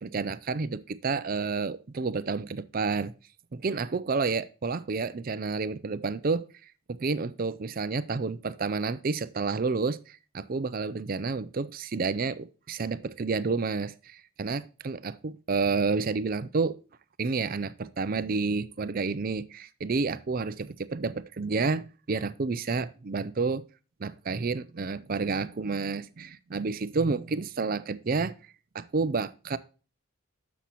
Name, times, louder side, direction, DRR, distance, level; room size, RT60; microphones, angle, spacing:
voice 1, 0.0-3.1 3.5-6.5 6.9-16.8 17.2-23.6 24.0-28.3 28.7-29.6, right 4 dB, 40° right, 0.5 m, -30 dB
10.0 x 7.0 x 3.0 m
head